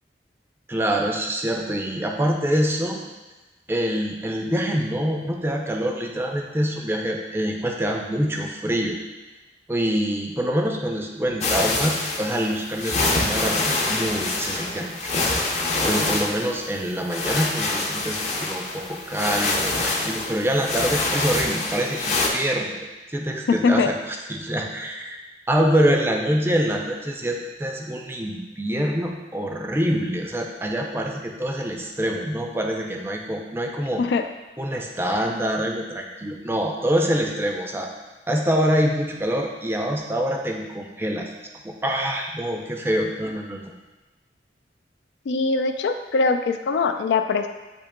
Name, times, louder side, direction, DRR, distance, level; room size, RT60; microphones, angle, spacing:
voice 1, 0.7-3.0 3.7-9.0 9.7-15.1 15.5-25.2 25.5-34.0 34.6-37.9 38.3-41.3 41.6-43.7, equal, 15° right, 1 dB, 0.4 m, -25 dB
sound 1, 11.4-22.3, left 2 dB, 40° left, 0.6 m, -25 dB
voice 2, 23.5-23.9 34.0-34.2 45.3-47.5, left 4 dB, 90° left, 7 dB, 0.3 m, -22 dB
8.3 x 2.8 x 2.2 m, 1.1 s
head